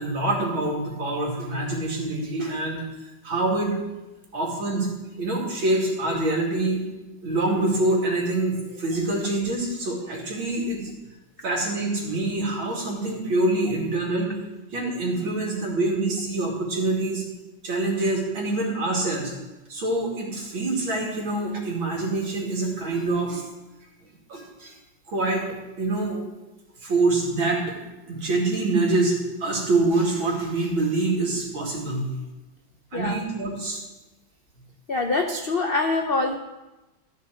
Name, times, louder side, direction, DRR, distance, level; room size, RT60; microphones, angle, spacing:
voice 1, 0.0-3.8 4.3-4.9 5.2-6.8 7.2-10.9 11.4-14.3 14.7-17.2 17.6-19.3 19.7-23.4 24.3-24.8 25.1-25.4 25.8-26.2 26.8-27.7 28.1-32.1 32.9-33.8, right 2 dB, 90° right, -2 dB, 3.3 m, -25 dB
voice 2, 34.9-36.4, left 3 dB, 75° left, 4 dB, 0.5 m, -24 dB
13.5 x 6.5 x 6.3 m, 1.1 s
omnidirectional pair, 2.1 m